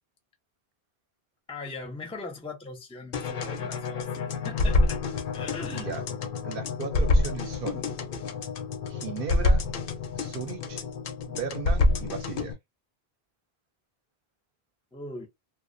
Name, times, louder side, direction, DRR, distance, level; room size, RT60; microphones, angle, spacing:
voice 1, 1.5-5.0 5.3-5.9 14.9-15.3, left 3 dB, 10° left, 0.4 m, -40 dB
sound 1, 3.1-12.5, left 2 dB, 65° left, 0.7 m, -27 dB
voice 2, 6.4-7.8 8.9-9.6 10.2-10.8 11.3-12.6, right 6 dB, 65° right, 0.7 m, -36 dB
2.3 x 2.1 x 2.5 m
omnidirectional pair, 1.0 m